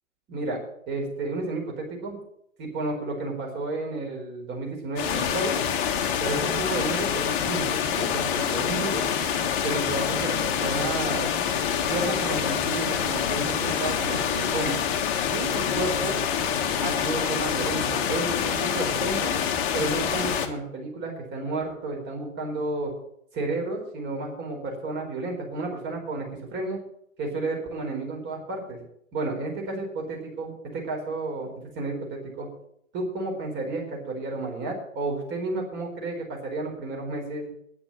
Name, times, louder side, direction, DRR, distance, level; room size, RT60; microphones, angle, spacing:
voice 1, 0.3-0.6 0.9-2.2 2.6-5.5 6.2-9.0 9.6-11.3 11.9-14.8 15.3-16.2 16.8-19.3 19.7-22.9 23.3-26.8 27.2-28.8 29.1-31.5 31.7-32.5 32.9-37.6, right 2 dB, 25° right, 1 dB, 4.5 m, -31 dB
sound 1, 5.0-20.5, left 8 dB, 35° left, 1.5 m, -26 dB
9.9 x 8.6 x 8.7 m, 0.75 s
hypercardioid pair, 125°, 41 cm